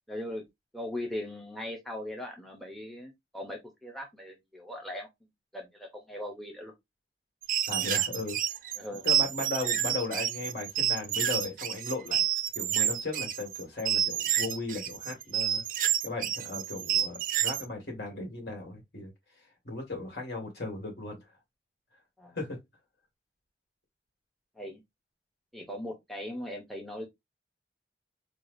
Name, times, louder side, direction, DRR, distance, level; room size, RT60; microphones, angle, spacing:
voice 1, 0.1-0.4 0.7-5.1 5.5-6.7 8.7-9.1 22.2-22.4 24.5-24.8 25.5-27.1, left 1 dB, ahead, 0.6 m, -39 dB
sound 1, 7.4-17.7, right 10 dB, 45° right, 0.4 m, -29 dB
voice 2, 7.7-8.4 9.0-12.3 12.6-15.6 16.0-19.1 19.6-21.2 22.3-22.6, left 3 dB, 60° left, 1.8 m, -36 dB
4.6 x 2.3 x 2.6 m
head